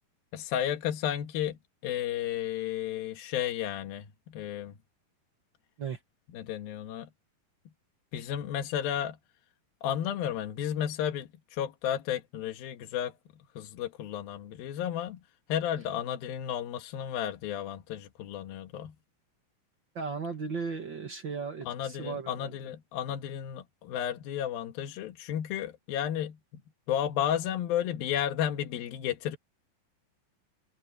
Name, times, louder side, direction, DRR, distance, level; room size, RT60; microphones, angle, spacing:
voice 1, 0.3-4.7 6.3-7.1 8.1-9.2 9.8-13.2 13.6-15.2 15.5-18.9 21.7-26.4 26.9-29.4, left 10 dB, 85° left, 3.2 m, -33 dB
voice 2, 19.9-22.6, right 5 dB, 50° right, 1.4 m, -36 dB
omnidirectional pair, 4.1 m